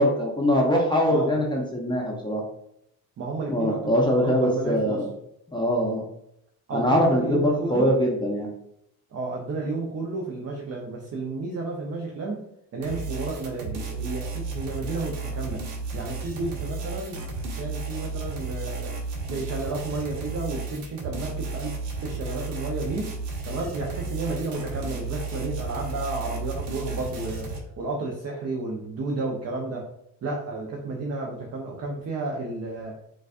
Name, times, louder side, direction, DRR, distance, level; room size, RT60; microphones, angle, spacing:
voice 1, 0.0-2.4 3.5-5.1 5.5-6.0 6.7-8.5, equal, 10° left, -2 dB, 0.7 m, -23 dB
voice 2, 3.2-5.0 6.7-7.9 9.1-12.4 12.7-15.6 15.9-17.2 17.5-18.9 19.3-23.1 23.4-27.5 27.8-29.9 30.2-33.0, right 3 dB, 40° right, 0 dB, 0.7 m, -32 dB
sound 1, 12.8-27.6, right 3 dB, 80° right, 0.8 m, -33 dB
4.0 x 2.3 x 2.4 m, 0.76 s
supercardioid pair, 75°, 41 cm